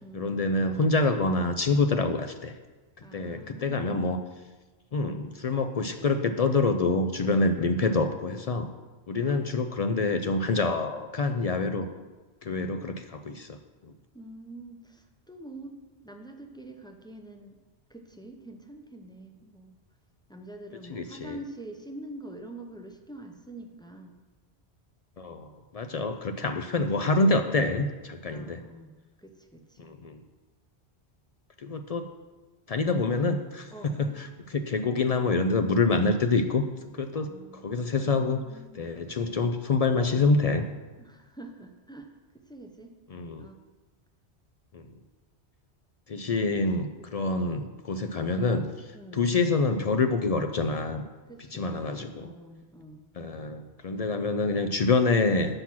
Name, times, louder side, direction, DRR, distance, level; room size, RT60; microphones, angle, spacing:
voice 1, 0.1-2.5 3.1-4.2 4.9-8.7 9.1-11.9 12.4-13.6 20.9-21.4 25.2-28.6 29.8-30.2 31.6-32.1 32.7-36.6 36.9-38.4 38.7-40.7 43.1-43.5 44.7-44.9 46.1-51.0 51.5-52.3 53.2-55.6, left 3 dB, 55° left, 7 dB, 0.4 m, -26 dB
voice 2, 3.0-4.1 9.2-9.5 14.1-17.6 17.9-19.8 20.3-24.2 28.3-29.9 33.7-34.1 37.1-38.8 41.0-42.9 43.4-43.6 48.9-49.3 51.3-53.1, right 1 dB, 5° left, 3 dB, 0.5 m, -46 dB
7.7 x 5.8 x 6.0 m, 1.2 s
omnidirectional pair, 1.1 m